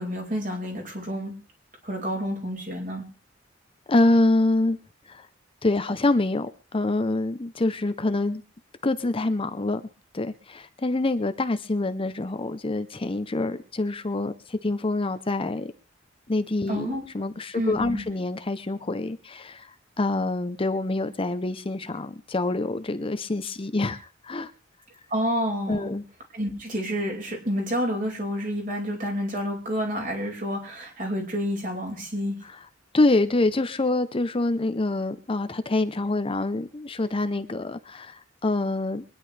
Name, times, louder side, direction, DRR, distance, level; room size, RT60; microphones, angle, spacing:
voice 1, 0.0-1.3 1.8-3.1 16.7-17.0 17.5-18.0 25.1-25.9 26.3-32.4, equal, 45° right, 5.2 m, -29 dB
voice 2, 3.9-4.8 5.1-5.3 5.6-8.4 8.8-9.8 10.1-15.7 16.3-24.5 25.7-26.0 32.9-39.0, left 2 dB, 30° left, 0.7 m, -26 dB
24.0 x 10.5 x 3.3 m
head